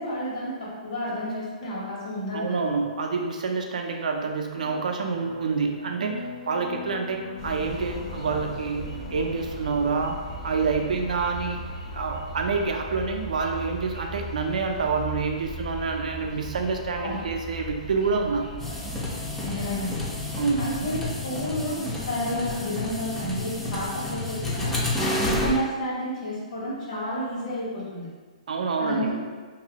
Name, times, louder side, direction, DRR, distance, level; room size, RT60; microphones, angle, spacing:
voice 1, 0.0-2.6 17.0-17.2 19.4-20.0 20.6-24.7 25.3-28.1 28.8-29.2, equal, 65° left, -7 dB, 1.2 m, -31 dB
voice 2, 2.3-8.8 9.1-10.2 10.4-11.6 11.9-18.5 20.4-20.8 28.5-29.2, right 4 dB, 80° right, 3 dB, 0.4 m, -27 dB
sound 1, 4.4-11.8, left 3 dB, 85° left, 0.4 m, -43 dB
sound 2, 7.4-21.2, equal, 50° left, 0.7 m, -38 dB
sound 3, 18.6-25.6, left 2 dB, 5° left, 0.4 m, -30 dB
2.6 x 2.0 x 2.8 m, 1.4 s
hypercardioid pair, 145°, 4 cm